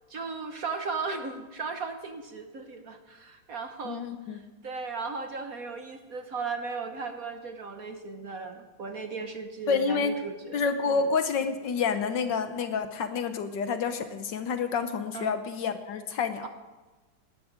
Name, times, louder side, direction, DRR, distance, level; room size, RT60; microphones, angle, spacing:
voice 1, 0.1-4.1 4.3-11.0 15.1-15.3 16.4-16.5, right 4 dB, 50° right, 6 dB, 1.3 m, -36 dB
voice 2, 3.8-4.4 9.7-10.2 10.5-16.5, left 5 dB, 65° left, 9 dB, 1.4 m, -28 dB
18.5 x 12.0 x 5.1 m, 1.2 s
omnidirectional pair, 2.3 m